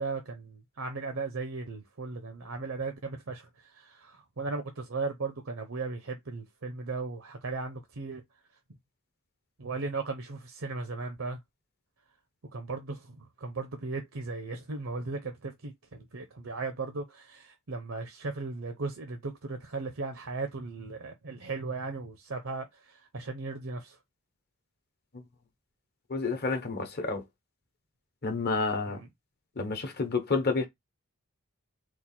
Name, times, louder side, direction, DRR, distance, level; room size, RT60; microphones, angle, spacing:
voice 1, 0.0-8.2 9.6-11.4 12.5-24.0 28.9-29.1, right 3 dB, 65° right, 0.7 m, -37 dB
voice 2, 26.1-27.2 28.2-29.0 29.6-30.7, left 3 dB, 45° left, 1.0 m, -29 dB
4.2 x 2.5 x 4.2 m
head